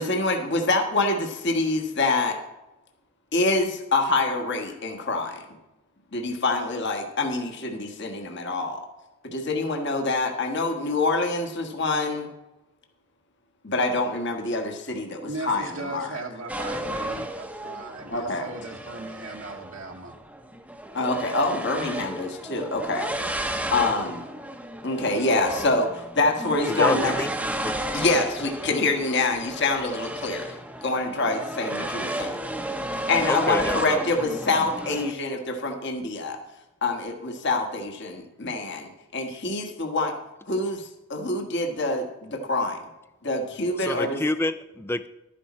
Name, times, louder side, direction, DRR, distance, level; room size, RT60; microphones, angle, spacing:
voice 1, 0.0-2.4 3.3-5.4 6.1-8.8 9.2-12.3 13.6-16.1 18.1-18.5 20.9-23.1 23.7-24.2 24.8-27.1 27.9-30.6 30.8-32.4 33.1-36.4 36.8-40.1 40.5-42.8 43.2-44.2, left 2 dB, 50° left, 4 dB, 1.4 m, -26 dB
voice 2, 15.2-20.1, right 3 dB, 60° right, 1 dB, 1.3 m, -37 dB
sound 1, 16.5-35.1, right 1 dB, 5° right, 0.8 m, -33 dB
voice 3, 26.7-27.3 27.6-28.2 33.3-34.0 43.8-45.1, left 2 dB, 10° left, 12 dB, 0.3 m, -28 dB
12.0 x 10.0 x 4.2 m, 0.99 s
head